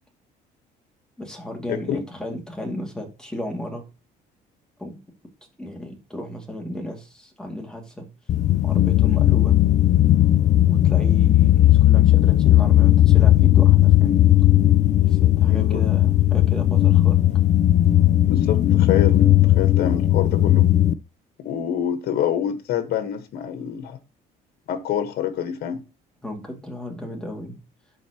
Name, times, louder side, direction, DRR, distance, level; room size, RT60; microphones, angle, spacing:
voice 1, 1.2-3.9 4.8-5.0 5.6-8.1 8.6-9.6 10.7-14.3 15.0-17.2 26.2-27.6, left 1 dB, 5° left, 2.3 m, -34 dB
voice 2, 1.7-2.0 15.5-15.8 18.3-20.6 21.4-24.0 24.7-25.8, left 9 dB, 70° left, 1.3 m, -26 dB
sound 1, 8.3-20.9, left 13 dB, 45° left, 0.4 m, -16 dB
11.5 x 4.2 x 2.9 m
cardioid pair, 110°, 17 cm